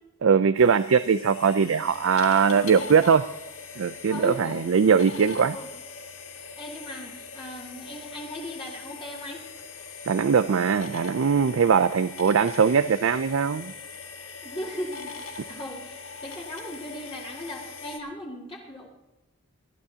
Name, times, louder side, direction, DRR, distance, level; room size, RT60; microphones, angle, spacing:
voice 1, 0.2-3.2 3.8-5.6 10.0-13.7, right 6 dB, 75° right, 12 dB, 0.5 m, -21 dB
sound 1, 0.6-18.0, left 4 dB, 90° left, 1.9 m, -41 dB
voice 2, 2.5-2.9 4.1-4.7 5.4-5.7 6.4-9.4 14.4-18.9, left 1 dB, 25° left, -2 dB, 2.3 m, -38 dB
20.5 x 12.5 x 2.8 m, 0.99 s
head